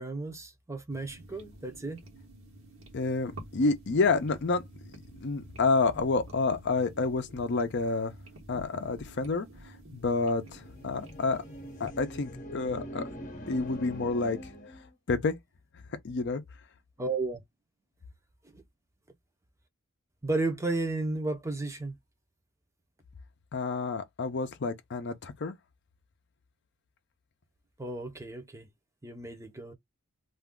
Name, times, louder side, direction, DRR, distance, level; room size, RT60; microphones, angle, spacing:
voice 1, 0.0-2.0 17.0-17.4 18.5-18.6 20.2-22.0 27.8-28.7 29.0-29.7, right 2 dB, 15° right, 0.6 m, -33 dB
sound 1, 0.9-11.9, right 1 dB, 70° right, 1.1 m, -50 dB
voice 2, 2.9-4.6 5.2-8.1 8.5-11.4 11.8-13.1 13.5-14.4 15.1-15.4 16.0-16.4 23.5-25.6, left 3 dB, 55° left, 0.5 m, -29 dB
sound 2, 10.5-14.9, equal, 40° left, 0.9 m, -43 dB
2.5 x 2.3 x 3.6 m
head